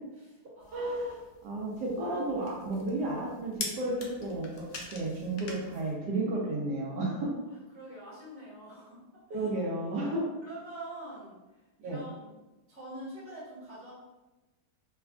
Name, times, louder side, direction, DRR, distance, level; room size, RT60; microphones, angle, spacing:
voice 1, 0.2-0.9 7.7-9.0 9.3-9.5 9.9-10.2 10.4-12.3 12.7-13.9, right 1 dB, 10° right, -9 dB, 0.7 m, -45 dB
sound 1, 0.6-5.9, left 3 dB, 85° left, 0.6 m, -44 dB
voice 2, 0.7-4.5 4.9-7.3 9.3-10.2 11.8-12.0, right 2 dB, 75° right, -3 dB, 1.2 m, -32 dB
3.3 x 2.3 x 2.3 m, 1.1 s
omnidirectional pair, 1.8 m